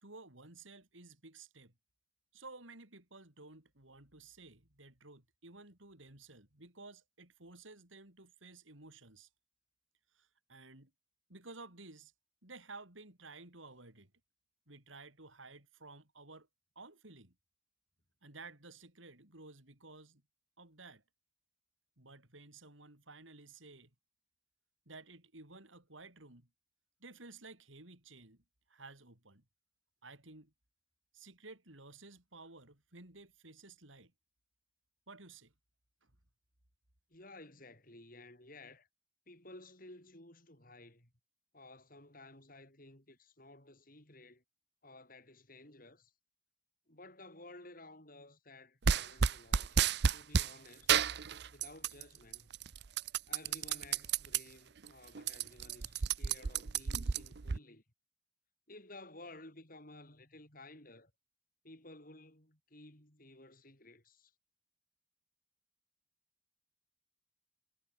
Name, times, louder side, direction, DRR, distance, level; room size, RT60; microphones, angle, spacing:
voice 1, 0.0-1.7 2.3-9.3 10.1-10.9 11.3-12.1 12.4-14.1 14.7-16.5 16.8-17.4 18.2-20.2 20.6-21.0 22.0-23.9 24.9-26.5 27.0-29.5 30.0-30.5 31.1-34.1 35.1-35.5 36.0-36.1, right 3 dB, 85° right, 5.2 m, -54 dB
voice 2, 37.1-38.9 39.3-41.1 41.5-44.4 44.8-46.1 46.9-51.0 51.5-52.5 53.3-57.8 58.7-61.1 61.6-64.3, left 2 dB, 45° left, 6.6 m, -55 dB
sound 1, 48.8-50.5 50.9-52.0 52.3-54.4 54.8-54.9 55.2-57.6, right 6 dB, 55° right, 0.6 m, -31 dB
head